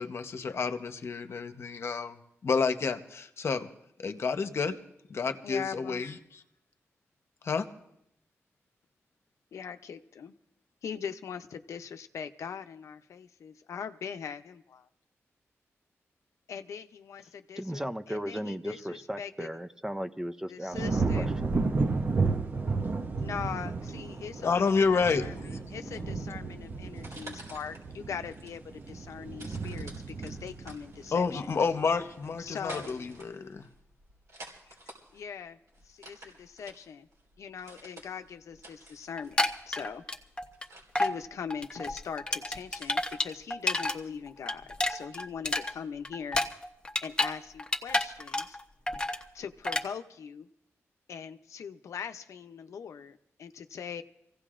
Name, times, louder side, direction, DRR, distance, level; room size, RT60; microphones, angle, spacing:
voice 1, 0.0-3.7 4.0-4.8 5.1-6.2 7.4-7.7 24.4-25.6 31.1-33.7, left 5 dB, 60° left, 8 dB, 0.9 m, -29 dB
voice 2, 5.4-6.0 9.5-10.3 10.8-14.9 16.5-17.8 18.1-19.5 20.5-21.3 23.2-29.9 30.2-31.5 32.4-33.2 35.1-35.6 35.9-37.1 37.4-40.0 41.0-46.4 47.0-48.6 49.3-50.5 51.1-54.0, left 7 dB, 90° left, 8 dB, 0.6 m, -41 dB
voice 3, 17.6-21.6, equal, 10° right, 10 dB, 0.5 m, -36 dB
sound 1, 20.7-32.0 32.5-32.9, right 3 dB, 40° right, 0.8 m, -33 dB
sound 2, 26.9-43.2, right 1 dB, 80° right, 3.9 m, -51 dB
sound 3, 39.2-40.6 41.0-41.2 41.5-44.0 44.3-47.3 47.6-48.6 48.9-49.2 49.6-49.9, left 2 dB, 20° left, 0.9 m, -30 dB
26.0 x 16.0 x 2.5 m, 0.79 s
wide cardioid pair, 115°, 5 cm